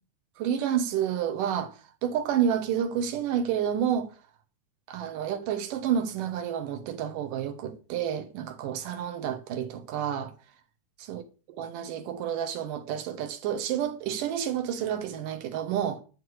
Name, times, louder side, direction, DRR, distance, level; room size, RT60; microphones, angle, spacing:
voice 1, 0.4-1.7 2.0-4.1 4.9-10.3 11.1-11.2 11.6-16.0, right 9 dB, 90° right, 2.9 m, -29 dB
11.5 x 5.0 x 7.9 m
omnidirectional pair, 3.6 m